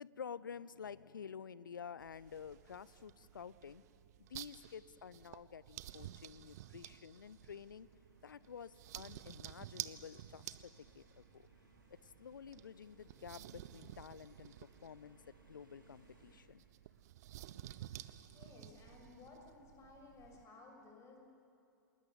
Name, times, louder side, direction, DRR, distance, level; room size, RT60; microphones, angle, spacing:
voice 1, 0.0-3.8 4.2-7.9 8.2-11.5 11.9-14.5 14.8-15.2 15.5-16.6, left 7 dB, 70° left, 19 dB, 0.7 m, -50 dB
sound 1, 2.0-20.4, right 13 dB, 50° right, 0.9 m, -53 dB
sound 2, 6.1-16.4, equal, 85° right, 6.6 m, -69 dB
voice 2, 18.3-21.2, left 3 dB, 25° left, 2 dB, 6.6 m, -57 dB
29.0 x 20.0 x 8.2 m, 2.5 s
figure-of-eight pair, 105°, 11 cm